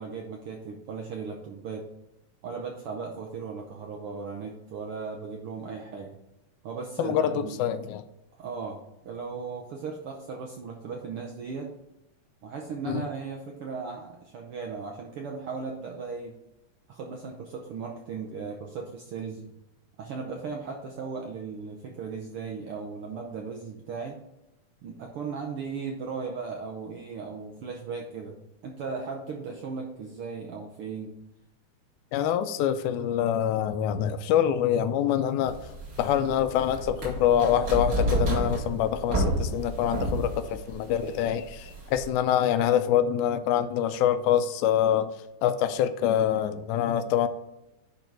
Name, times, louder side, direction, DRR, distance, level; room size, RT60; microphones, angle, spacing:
voice 1, 0.0-1.9 2.4-6.2 6.6-7.6 8.4-11.7 12.4-16.3 16.9-19.5 20.0-24.2 24.8-31.1, right 5 dB, 75° right, 1 dB, 1.3 m, -37 dB
voice 2, 7.0-8.0 12.9-13.1 32.1-35.6 36.0-45.1 45.4-47.3, left 10 dB, 80° left, 11 dB, 2.0 m, -25 dB
sound 1, 35.5-42.1, right 1 dB, 35° right, 2.8 m, -30 dB
10.5 x 3.9 x 4.6 m, 0.93 s
omnidirectional pair, 3.5 m